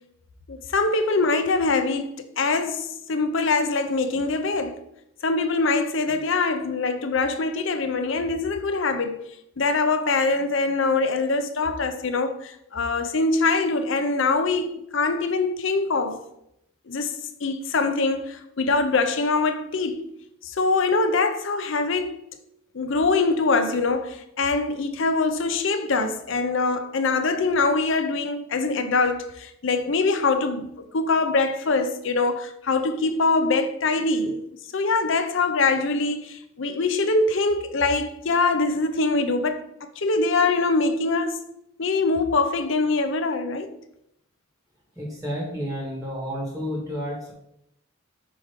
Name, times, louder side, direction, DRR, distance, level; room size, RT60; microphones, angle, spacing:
voice 1, 0.5-4.8 5.2-9.2 9.6-16.2 16.9-20.0 20.4-22.2 22.7-30.7 30.9-34.4 34.7-39.6 40.0-41.4 41.8-43.7, left 3 dB, 60° left, 0.6 m, -23 dB
voice 2, 45.0-47.3, equal, 5° right, 1.3 m, -31 dB
6.1 x 3.6 x 4.7 m
head